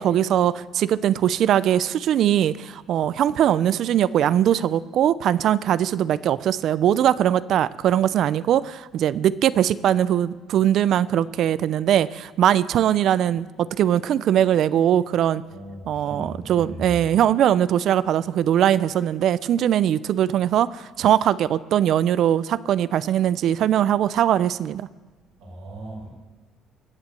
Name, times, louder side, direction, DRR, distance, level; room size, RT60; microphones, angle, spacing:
voice 1, 0.0-15.4 15.9-24.9, right 10 dB, 65° right, 18 dB, 0.5 m, -21 dB
voice 2, 15.5-17.0 25.4-26.1, right 1 dB, 85° right, -2 dB, 5.9 m, -37 dB
21.5 x 8.1 x 6.9 m, 1.3 s
supercardioid pair, 85°, 0 cm